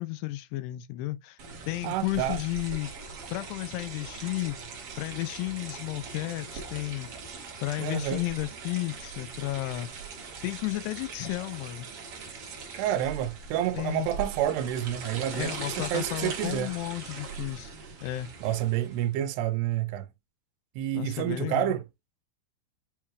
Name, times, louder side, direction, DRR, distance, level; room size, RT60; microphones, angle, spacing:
voice 1, 0.0-1.4 1.7-2.9 3.3-4.6 5.0-7.1 7.6-9.9 10.4-11.9 13.7-14.1 15.3-17.7 18.0-18.3 21.0-21.7, left 17 dB, 85° left, 2.6 m, -33 dB
sound 1, 1.4-19.1, right 5 dB, 65° right, 1.5 m, -41 dB
voice 2, 1.8-2.4 7.8-8.2 12.7-16.7 18.4-20.1 20.8-21.8, right 11 dB, 85° right, 2.6 m, -29 dB
7.1 x 3.2 x 2.2 m
omnidirectional pair, 4.7 m